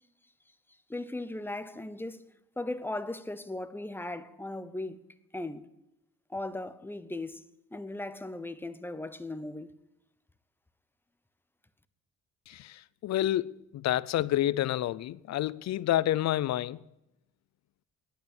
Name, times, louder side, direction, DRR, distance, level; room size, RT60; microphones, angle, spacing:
voice 1, 0.9-5.0 5.3-5.7 6.3-7.4 7.7-9.7, left 2 dB, 5° left, 0.8 m, -37 dB
voice 2, 12.5-16.8, left 13 dB, 60° left, 0.5 m, -29 dB
11.0 x 9.2 x 8.9 m
cardioid pair, 90°, 30 cm